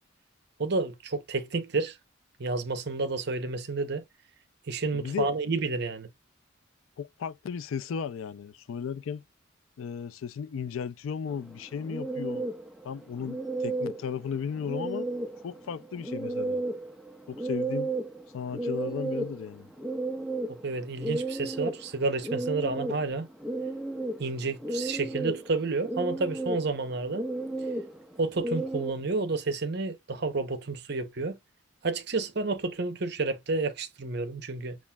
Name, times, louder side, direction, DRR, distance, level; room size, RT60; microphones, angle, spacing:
voice 1, 0.6-2.0 2.4-4.0 4.7-6.1 20.6-23.3 24.2-27.3 28.2-31.4 31.8-34.8, right 3 dB, 55° right, 0.8 m, -30 dB
voice 2, 4.9-5.3 7.0-9.2 9.8-12.5 12.8-15.1 15.4-16.6 17.3-17.9 18.3-19.7, left 7 dB, 80° left, 0.4 m, -35 dB
sound 1, 11.3-28.9, right 2 dB, ahead, 0.4 m, -34 dB
7.2 x 2.4 x 2.3 m
head